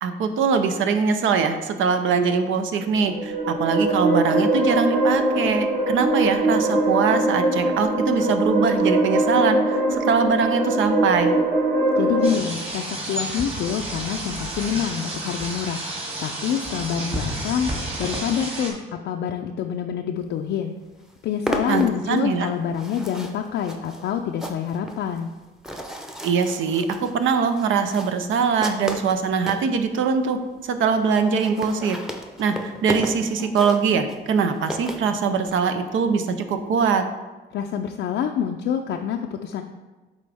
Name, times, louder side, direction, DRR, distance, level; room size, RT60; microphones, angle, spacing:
voice 1, 0.0-11.4 21.7-22.5 26.2-30.4 30.6-32.0 32.4-37.0, right 5 dB, 75° right, 8 dB, 0.6 m, -22 dB
sound 1, 2.9-12.3, right 2 dB, 45° right, 1.5 m, -22 dB
voice 2, 12.0-15.8 16.2-17.7 18.0-18.8 19.0-20.7 21.2-25.3 37.5-39.6, left 8 dB, 70° left, 3 dB, 0.4 m, -26 dB
sound 2, 12.2-18.7, right 1 dB, 30° right, 2.0 m, -31 dB
sound 3, 20.5-20.6 20.8-29.7 30.3-30.4 30.6-30.7 30.9-31.0 31.2-35.6, equal, ahead, 0.7 m, -34 dB
8.3 x 3.8 x 3.4 m, 1.2 s
cardioid pair, 90°, 20 cm